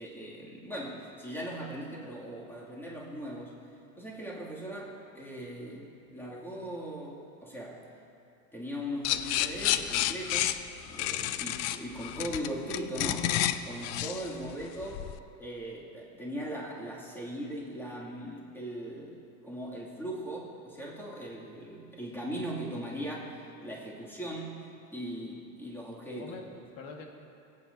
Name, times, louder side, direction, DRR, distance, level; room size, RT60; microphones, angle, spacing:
voice 1, 0.0-3.5 4.0-7.8 8.5-10.6 10.8-15.0 15.4-26.3, equal, 5° left, -5 dB, 2.4 m, -39 dB
sound 1, 9.0-15.2, left 13 dB, 40° left, 0.4 m, -30 dB
voice 2, 14.3-14.7 26.2-27.1, left 4 dB, 55° left, 2 dB, 1.6 m, -45 dB
21.5 x 8.8 x 2.7 m, 2.6 s
supercardioid pair, 110°, 42 cm